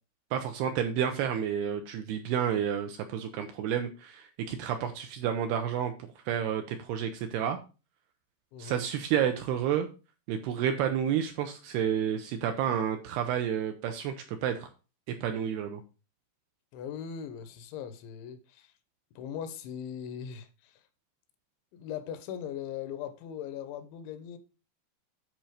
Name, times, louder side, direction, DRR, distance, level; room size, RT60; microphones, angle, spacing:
voice 1, 0.3-5.9 6.3-7.6 8.6-9.9 10.3-14.7 15.1-15.8, right 9 dB, 80° right, 2.4 m, -30 dB
voice 2, 8.5-8.8 16.7-18.7 19.2-20.8 21.7-24.4, left 8 dB, 85° left, 3.2 m, -40 dB
10.5 x 4.4 x 5.0 m
omnidirectional pair, 5.3 m